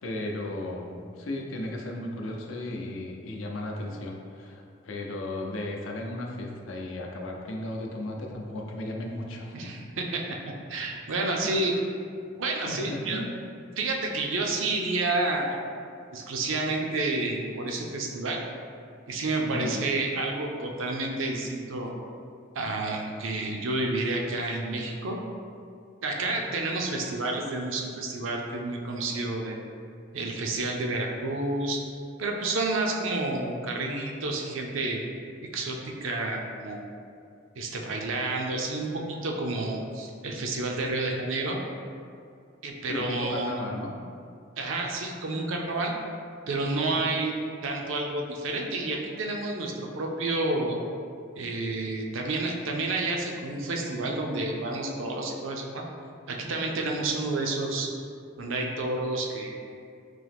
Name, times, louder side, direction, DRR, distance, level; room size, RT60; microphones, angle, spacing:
voice 1, 0.0-9.7 11.4-11.5 12.7-13.3 19.4-19.8 26.2-26.4 42.9-43.9 46.9-47.0, left 1 dB, 80° left, 0 dB, 0.5 m, -35 dB
voice 2, 9.5-11.7 12.4-13.2 13.8-15.6 16.1-18.4 19.1-21.9 22.5-25.2 26.0-29.6 30.1-31.8 32.2-35.0 35.4-36.8 37.6-41.6 42.6-43.6 44.6-45.9 46.5-47.3 47.6-50.8 51.4-55.8 56.3-57.9 58.4-59.6, right 2 dB, 75° right, 1 dB, 0.5 m, -30 dB
3.8 x 2.8 x 3.4 m, 2.4 s
head